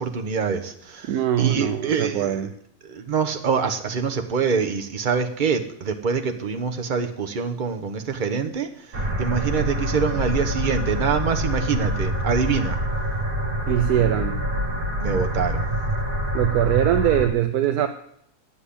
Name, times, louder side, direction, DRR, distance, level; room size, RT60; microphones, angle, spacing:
voice 1, 0.0-1.1 1.4-2.4 2.9-8.7 9.2-12.8 15.0-15.7, right 6 dB, 35° right, 5 dB, 1.1 m, -25 dB
voice 2, 1.1-2.5 13.7-14.4 16.3-17.9, right 11 dB, 85° right, 7 dB, 1.2 m, -22 dB
sound 1, 8.9-17.3, equal, 65° right, 2.1 m, -26 dB
9.8 x 7.5 x 8.5 m, 0.71 s
omnidirectional pair, 1.6 m